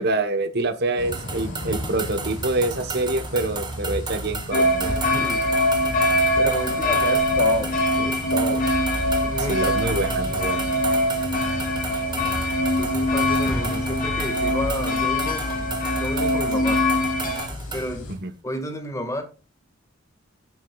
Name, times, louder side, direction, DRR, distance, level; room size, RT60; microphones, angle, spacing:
voice 1, 0.0-4.9 9.4-10.7 18.1-18.3, right 2 dB, 55° right, 1.1 m, -26 dB
sound 1, 1.0-18.1, left 1 dB, 80° left, 4.1 m, -35 dB
sound 2, 1.1-17.9, right 4 dB, 20° right, 1.6 m, -35 dB
sound 3, 4.5-17.5, left 1 dB, 45° left, 3.6 m, -23 dB
voice 2, 5.1-5.5 6.4-8.7 9.2-10.2 12.8-15.7 15.9-16.9 17.7-18.1 18.4-19.2, left 1 dB, 15° left, 1.9 m, -31 dB
16.5 x 7.3 x 2.4 m
head